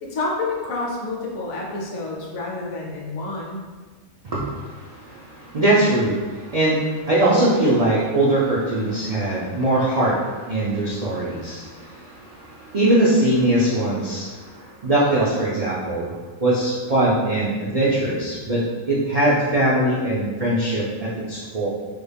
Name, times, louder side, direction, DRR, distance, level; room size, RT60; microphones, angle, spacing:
voice 1, 0.0-3.6, left 3 dB, 70° left, -2 dB, 1.1 m, -28 dB
voice 2, 4.2-21.7, right 1 dB, 80° right, -8 dB, 0.3 m, -21 dB
3.4 x 2.3 x 3.4 m, 1.4 s
omnidirectional pair, 1.5 m